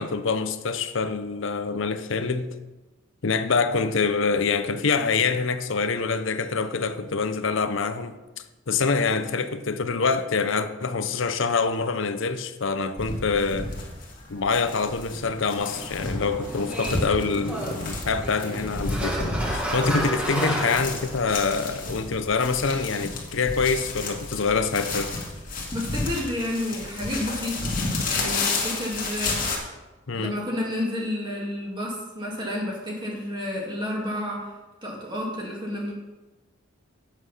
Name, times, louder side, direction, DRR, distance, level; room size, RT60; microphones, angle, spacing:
voice 1, 0.0-2.6 3.2-8.2 8.7-13.7 14.3-25.1 30.1-30.4, left 4 dB, 65° left, 0.7 m, -25 dB
sound 1, 13.0-29.6, left 3 dB, 40° left, 2.1 m, -32 dB
sound 2, 15.6-21.3, right 1 dB, 5° right, 1.9 m, -31 dB
voice 2, 25.7-27.7 28.0-29.4 30.1-34.5 34.8-35.9, left 1 dB, 20° right, 2.1 m, -30 dB
8.6 x 8.2 x 5.7 m
head